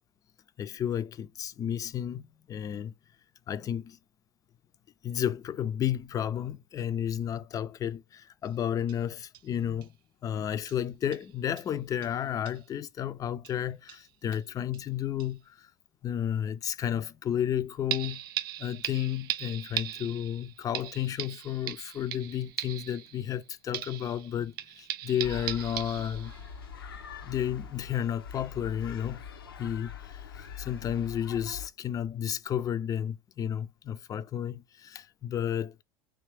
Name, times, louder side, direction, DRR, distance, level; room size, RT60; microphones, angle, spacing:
voice 1, 0.6-2.9 3.5-4.0 5.0-9.9 10.2-15.7 16.0-18.2 18.6-26.3 27.2-29.2 29.6-35.8, left 10 dB, 30° left, 0.4 m, -32 dB
sound 1, 8.5-8.6 8.9-9.0 9.3-9.4 9.8-9.9 10.7-10.8 11.1-11.3 11.6-11.7 12.0-12.1 12.5-12.6 13.4-13.6 13.9-14.4 14.7-14.8 15.2-15.3 17.9-23.4 23.7-26.5 26.9-27.0, right 13 dB, 70° right, 0.4 m, -38 dB
sound 2, 25.2-31.7, left 7 dB, 85° left, 0.5 m, -43 dB
3.3 x 3.0 x 3.3 m
hypercardioid pair, 80°, 12 cm